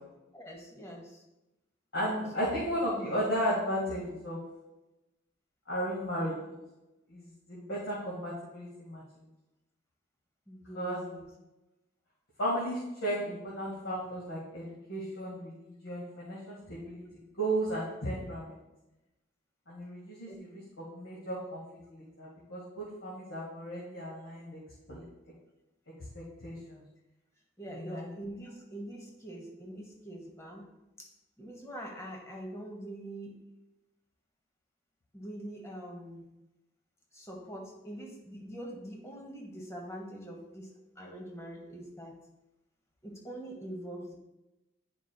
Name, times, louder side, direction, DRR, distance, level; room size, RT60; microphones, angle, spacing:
voice 1, 0.3-1.2 2.3-2.6 10.5-11.3 16.3-16.4 20.3-20.4 27.6-30.6 31.0-31.1 31.4-33.4 35.1-36.3 37.1-42.2 43.0-44.1, right 1 dB, 15° left, 0 dB, 1.0 m, -44 dB
voice 2, 1.9-4.4 5.7-6.5 7.1-9.0 10.8-11.0 12.4-17.0 17.4-18.6 19.7-21.6 21.9-24.6 24.9-25.0 26.1-26.8 27.7-28.1, equal, 85° left, -6 dB, 1.9 m, -35 dB
11.0 x 5.0 x 2.3 m, 0.98 s
head